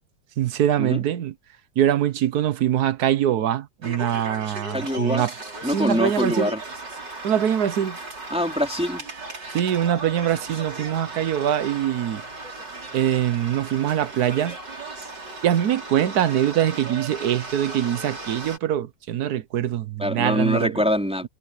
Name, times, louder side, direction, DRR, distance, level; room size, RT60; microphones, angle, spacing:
voice 1, 0.4-1.3 1.8-5.3 5.7-6.5 7.2-8.0 9.5-12.2 12.9-14.6 15.4-20.8, right 10 dB, 65° right, 1.3 m, -23 dB
sound 1, 3.8-18.6, right 3 dB, 90° right, 6.0 m, -36 dB
voice 2, 4.7-5.2 5.6-6.6 8.3-9.0 20.0-21.3, equal, 5° right, 4.3 m, -24 dB
omnidirectional pair, 1.8 m